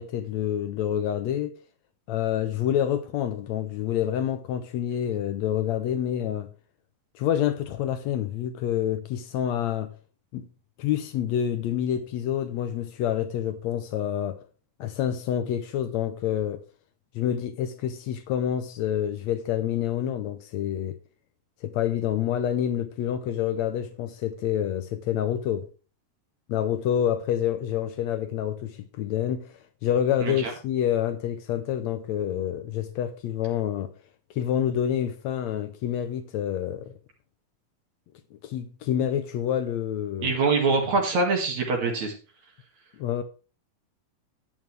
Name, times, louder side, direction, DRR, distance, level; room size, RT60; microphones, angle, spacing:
voice 1, 0.0-1.6 2.1-6.5 7.2-9.9 10.3-10.5 10.8-14.4 14.8-16.6 17.2-21.0 21.6-25.7 26.5-33.9 34.4-36.9 38.3-40.3 43.0-43.2, left 10 dB, 75° left, 1.7 m, -27 dB
voice 2, 30.2-30.5 40.2-42.1, right 3 dB, 60° right, 3.2 m, -24 dB
11.0 x 9.2 x 3.3 m
omnidirectional pair, 3.9 m